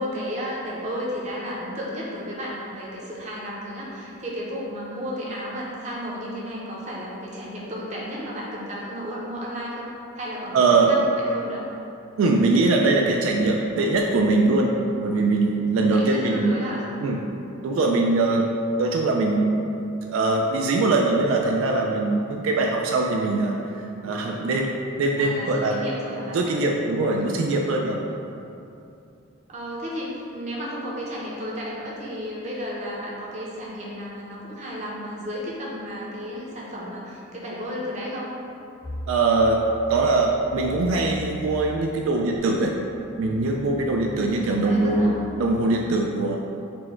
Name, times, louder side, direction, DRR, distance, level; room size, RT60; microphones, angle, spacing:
voice 1, 0.0-9.9 10.2-11.6 15.9-16.8 25.2-26.4 29.5-38.3 44.4-45.1, equal, 35° right, -5 dB, 0.7 m, -33 dB
voice 2, 10.5-11.0 12.2-14.7 15.0-16.6 17.0-17.2 17.6-18.5 18.8-19.5 20.0-24.7 25.0-25.8 26.3-28.0 39.1-39.6 39.9-42.7 43.2-46.4, right 3 dB, 80° right, 0 dB, 0.3 m, -22 dB
sound 1, 38.8-41.8 42.3-45.6, equal, 35° left, 0.4 m, -40 dB
4.3 x 2.1 x 4.4 m, 2.7 s
head